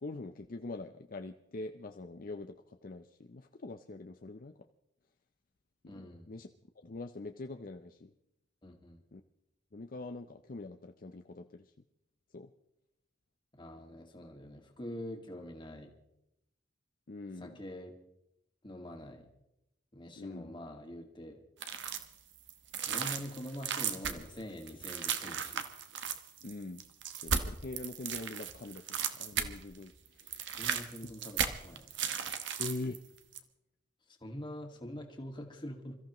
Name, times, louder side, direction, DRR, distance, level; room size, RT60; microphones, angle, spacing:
voice 1, 0.0-4.5 5.8-6.5 6.8-8.1 9.1-9.2 9.7-11.7 12.3-12.5 17.1-17.6 20.2-20.5 26.4-26.8 27.2-30.4 32.6-33.0, left 2 dB, 50° left, 6 dB, 0.6 m, -43 dB
voice 2, 5.9-6.3 8.6-9.0 13.5-15.9 17.4-17.9 18.6-19.3 19.9-21.4 22.9-25.6 30.6-31.9 34.1-36.0, left 1 dB, 25° left, 3 dB, 1.9 m, -45 dB
sound 1, 21.6-22.1 22.5-29.8 30.1-33.0 33.3-33.4, right 7 dB, 70° right, 1.1 m, -36 dB
27.5 x 14.0 x 3.0 m, 0.86 s
head